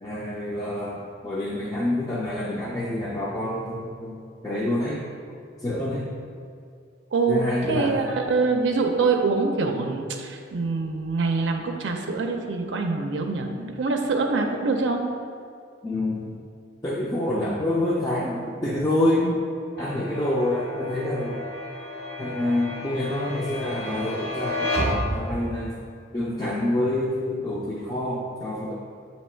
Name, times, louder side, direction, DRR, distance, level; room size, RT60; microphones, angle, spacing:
voice 1, 0.0-4.1 4.4-5.0 5.6-6.1 7.3-8.0 15.8-16.3 16.8-19.3 19.8-21.4 22.2-25.7 26.1-28.8, left 1 dB, 20° left, -5 dB, 0.4 m, -27 dB
voice 2, 7.1-15.0, right 4 dB, 85° right, 3 dB, 0.5 m, -25 dB
sound 1, 19.8-25.7, left 1 dB, 75° left, 1.4 m, -31 dB
7.7 x 2.9 x 4.3 m, 2.3 s
head